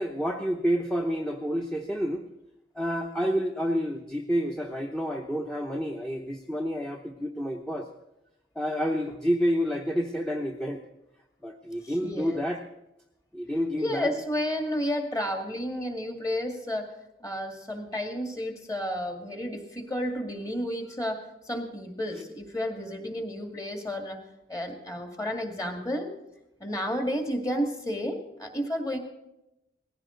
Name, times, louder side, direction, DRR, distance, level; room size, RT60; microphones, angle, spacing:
voice 1, 0.0-2.2 2.7-7.9 8.6-10.8 11.4-12.6 13.3-14.1, equal, 5° left, 2 dB, 0.8 m, -29 dB
voice 2, 11.8-12.5 13.8-16.9 17.2-24.2 24.5-26.1 26.6-29.0, equal, 20° left, 4 dB, 2.1 m, -31 dB
19.0 x 15.5 x 3.9 m, 0.89 s
head